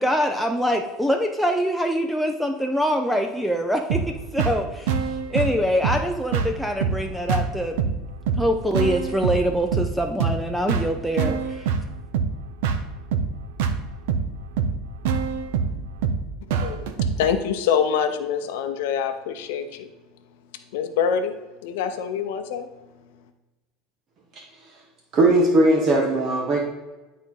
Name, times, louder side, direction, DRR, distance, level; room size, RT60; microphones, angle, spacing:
voice 1, 0.0-5.0 5.3-7.8 8.4-11.7, equal, ahead, 4 dB, 0.5 m, -24 dB
sound 1, 3.9-17.3, right 6 dB, 80° right, 0.8 m, -26 dB
voice 2, 16.6-19.9 20.7-21.3 21.6-22.7, left 7 dB, 85° left, 7 dB, 0.6 m, -25 dB
voice 3, 25.1-26.6, right 2 dB, 40° right, 0 dB, 1.2 m, -18 dB
11.5 x 4.2 x 3.7 m, 1.1 s
supercardioid pair, 135°, 0 cm